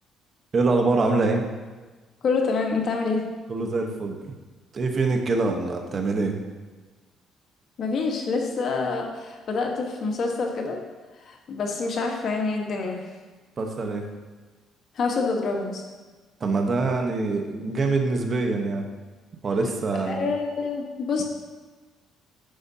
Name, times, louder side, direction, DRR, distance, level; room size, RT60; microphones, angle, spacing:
voice 1, 0.5-1.4 3.5-4.2 4.7-6.4 13.6-14.0 16.4-18.9 19.4-20.3, right 3 dB, 40° right, 3 dB, 1.0 m, -24 dB
voice 2, 2.2-3.3 7.8-10.8 11.2-13.0 14.9-15.8 20.1-21.2, left 4 dB, 55° left, 2 dB, 1.3 m, -27 dB
10.0 x 6.6 x 2.8 m, 1.3 s
cardioid pair, 105°, 0 cm